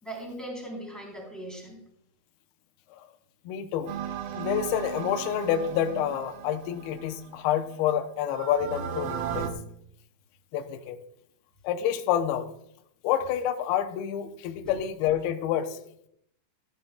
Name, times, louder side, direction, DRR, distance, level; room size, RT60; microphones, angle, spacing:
voice 1, 0.0-1.8 14.6-14.7, right 1 dB, ahead, -2 dB, 2.5 m, -39 dB
voice 2, 3.5-3.9 4.3-9.5 10.5-11.0 11.6-12.5 13.0-15.8, left 10 dB, 85° left, 6 dB, 2.2 m, -28 dB
sound 1, 3.9-7.7 8.3-9.5, right 8 dB, 75° right, 2.3 m, -36 dB
14.5 x 11.5 x 2.3 m, 0.71 s
omnidirectional pair, 5.4 m